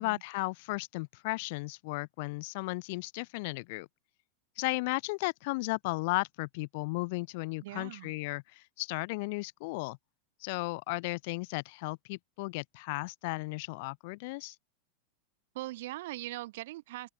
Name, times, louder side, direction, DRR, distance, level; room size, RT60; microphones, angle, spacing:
voice 1, 0.0-3.9 4.6-10.0 10.4-14.5, left 26 dB, 50° left, 0.4 m, -35 dB
voice 2, 7.6-8.1 15.5-17.1, right 17 dB, 55° right, 1.0 m, -40 dB
open air
figure-of-eight pair, 90°, 0 cm